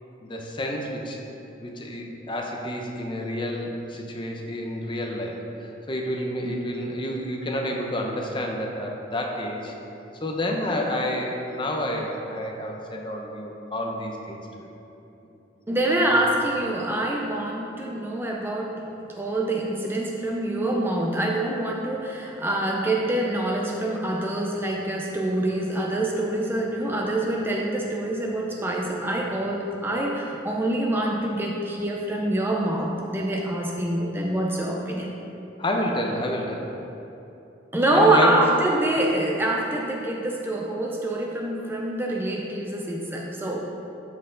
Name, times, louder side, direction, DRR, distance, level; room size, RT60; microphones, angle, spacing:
voice 1, 0.2-1.2 1.6-9.8 10.2-14.7 16.0-16.2 35.6-36.7 37.9-38.4, left 1 dB, 25° left, 0 dB, 0.8 m, -29 dB
voice 2, 15.7-18.8 19.1-35.1 37.7-43.7, right 1 dB, 10° right, -1 dB, 0.5 m, -25 dB
13.0 x 4.4 x 3.9 m, 2.9 s
head